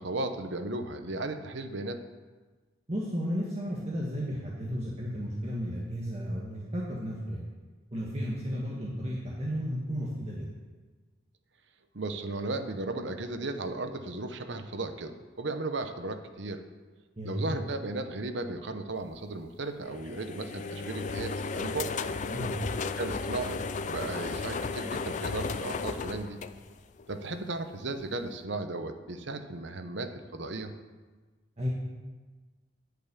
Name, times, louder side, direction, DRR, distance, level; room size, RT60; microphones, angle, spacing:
voice 1, 0.0-2.0 11.9-16.6 17.2-21.9 23.0-26.4 27.1-30.7, right 2 dB, 65° right, 7 dB, 0.9 m, -35 dB
voice 2, 2.9-7.4 7.9-10.5 17.2-17.5 22.3-22.6 31.6-31.7, equal, 35° right, -5 dB, 1.6 m, -33 dB
sound 1, 19.8-27.1, left 4 dB, 40° left, 0.4 m, -34 dB
10.5 x 5.7 x 8.4 m, 1.3 s
head